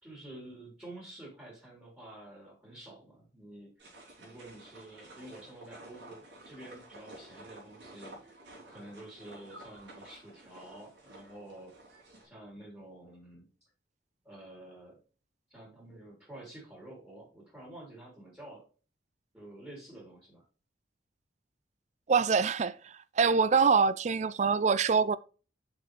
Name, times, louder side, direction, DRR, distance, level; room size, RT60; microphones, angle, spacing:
voice 1, 0.0-3.7 4.2-8.3 8.7-11.7 12.2-13.5 14.2-15.0 15.5-18.6 19.3-20.4, right 1 dB, 10° right, 3.7 m, -49 dB
sound 1, 3.8-12.3, right 1 dB, 85° right, 3.6 m, -52 dB
voice 2, 22.1-25.2, right 5 dB, 40° right, 0.4 m, -25 dB
6.6 x 6.2 x 3.3 m
head